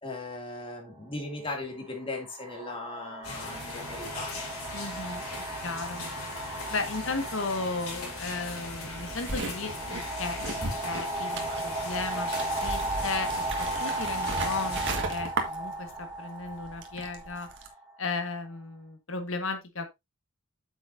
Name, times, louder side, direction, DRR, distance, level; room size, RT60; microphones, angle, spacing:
voice 1, 0.0-4.3, left 2 dB, 25° left, 2.5 m, -38 dB
sound 1, 0.8-0.9 1.8-18.5, right 2 dB, 15° right, 1.4 m, -36 dB
sound 2, 3.2-14.9, left 3 dB, 75° left, 4.2 m, -40 dB
voice 2, 4.7-5.2 5.6-6.0 6.4-10.4 10.8-14.8 15.1-17.5 18.0-19.9, left 3 dB, 60° left, 1.6 m, -35 dB
sound 3, 8.9-16.2 16.4-17.7, right 2 dB, 55° right, 1.7 m, -36 dB
8.2 x 7.4 x 2.7 m
head